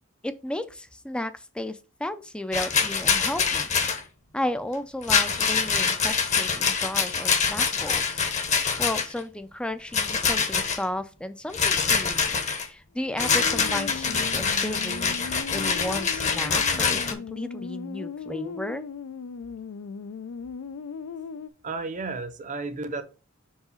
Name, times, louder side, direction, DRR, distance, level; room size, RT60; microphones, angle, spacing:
voice 1, 0.2-3.7 4.3-8.2 8.8-15.2 15.5-18.8, left 1 dB, 5° left, 0.3 m, -34 dB
Rattle, 2.5-4.0 5.0-9.2 9.9-10.8 11.5-12.7 13.2-17.1, left 5 dB, 35° left, 0.8 m, -25 dB
sound 1, 13.0-21.5, left 5 dB, 80° left, 0.4 m, -38 dB
voice 2, 21.6-23.0, right 3 dB, 35° right, 0.7 m, -32 dB
4.7 x 3.7 x 5.6 m
head